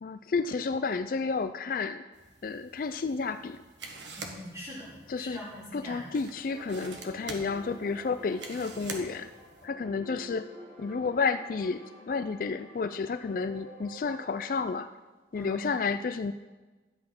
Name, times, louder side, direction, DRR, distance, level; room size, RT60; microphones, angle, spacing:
voice 1, 0.0-2.0 2.4-3.6 5.1-5.4 5.7-9.3 9.6-10.5 10.8-14.9 15.3-16.3, left 4 dB, 50° left, 11 dB, 0.3 m, -31 dB
sound 1, 2.1-9.7, right 3 dB, 80° right, 1.5 m, -46 dB
voice 2, 4.2-6.0 15.3-15.6, left 1 dB, 15° right, -6 dB, 3.8 m, -42 dB
sound 2, 6.5-14.6, equal, 45° right, 3.8 m, -49 dB
12.5 x 8.5 x 6.0 m, 1.3 s
head